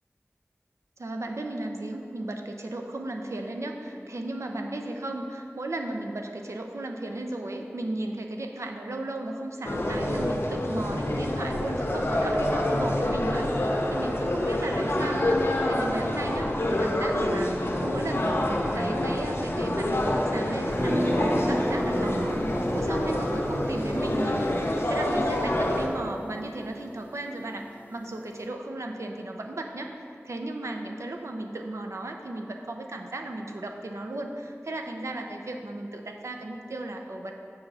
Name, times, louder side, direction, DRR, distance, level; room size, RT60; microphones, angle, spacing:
voice 1, 1.0-24.6 24.9-29.9 30.2-37.3, right 2 dB, 90° right, 3 dB, 0.7 m, -35 dB
sound 1, 9.6-25.9, left 1 dB, 55° left, 1.0 m, -27 dB
sound 2, 20.7-26.7, equal, 35° right, 0.7 m, -33 dB
6.9 x 5.7 x 5.4 m, 2.5 s
wide cardioid pair, 55°, 5 cm